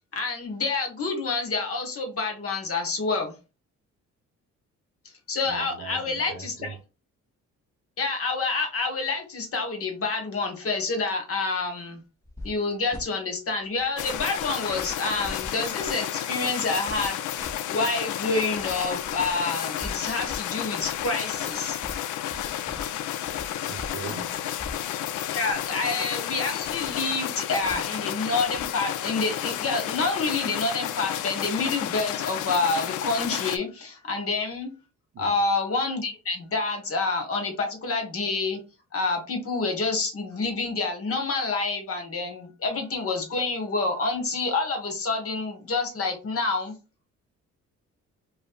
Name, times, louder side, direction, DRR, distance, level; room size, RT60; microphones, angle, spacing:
voice 1, 0.1-3.3 5.3-6.8 8.0-12.0 12.4-17.4 17.7-21.8 25.3-34.7 35.2-38.6 38.9-46.7, left 3 dB, 50° left, 1.2 m, -28 dB
voice 2, 5.4-6.8 23.5-24.6 35.1-35.4, right 6 dB, 55° right, 0.7 m, -40 dB
sound 1, 12.2-12.6 12.9-13.1 13.8-15.9 16.9-17.5 18.5-24.9 25.3-25.7 26.6-26.9 27.6-27.8 28.4-28.7, left 1 dB, 10° left, 1.2 m, -42 dB
sound 2, 14.0-33.6, left 11 dB, 80° left, 0.5 m, -31 dB
5.1 x 2.1 x 2.3 m
cardioid pair, 90°, 30 cm